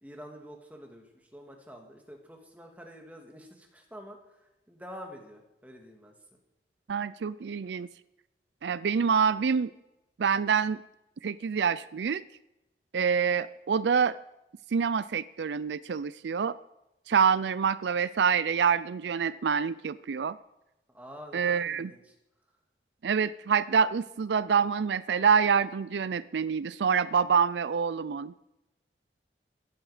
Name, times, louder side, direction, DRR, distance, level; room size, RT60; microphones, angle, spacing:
voice 1, 0.0-6.1 20.9-22.1, equal, 10° right, 2 dB, 2.2 m, -47 dB
voice 2, 6.9-7.9 8.6-9.7 10.2-10.8 11.2-12.2 12.9-14.2 14.7-16.6 17.1-20.4 21.3-21.9 23.0-28.3, right 6 dB, 80° right, 17 dB, 0.4 m, -26 dB
16.0 x 11.5 x 5.0 m, 0.92 s
head